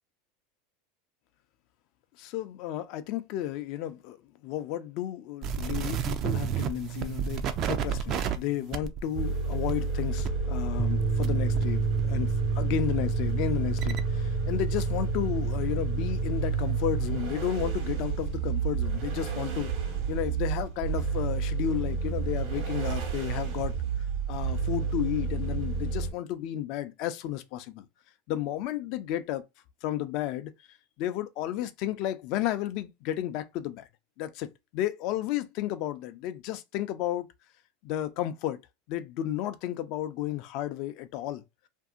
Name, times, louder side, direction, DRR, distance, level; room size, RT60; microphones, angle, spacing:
voice 1, 2.2-4.2 4.4-19.7 20.1-23.7 24.3-27.9 28.3-29.4 29.8-30.5 31.0-33.8 34.2-37.3 37.8-38.6 38.9-41.4, left 12 dB, 60° left, 0.5 m, -33 dB
sound 1, 5.4-11.7 12.0-14.0, right 8 dB, 45° right, 0.4 m, -33 dB
sound 2, 9.1-26.1, right 4 dB, 65° right, 1.2 m, -30 dB
sound 3, 10.8-17.1, right 6 dB, 5° left, 0.5 m, -31 dB
2.6 x 2.6 x 2.4 m
hypercardioid pair, 105°, 0 cm